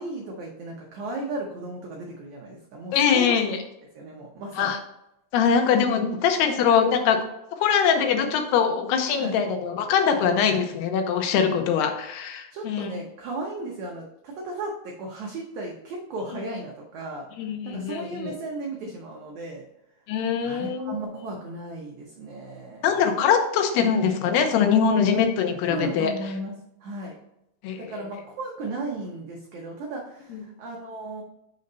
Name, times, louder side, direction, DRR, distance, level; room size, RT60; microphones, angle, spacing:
voice 1, 0.0-3.4 3.9-4.7 9.2-9.4 12.5-17.3 17.6-19.7 20.4-22.9 25.7-26.6 26.8-27.2 27.8-31.2, right 2 dB, 90° right, 0 dB, 1.6 m, -35 dB
voice 2, 2.9-3.6 4.6-4.8 5.3-7.2 7.6-12.9 17.4-18.3 20.1-21.0 22.8-26.1 27.6-27.9 30.3-30.4, left 7 dB, 85° left, 5 dB, 2.9 m, -22 dB
6.4 x 4.0 x 5.4 m, 0.85 s
omnidirectional pair, 4.6 m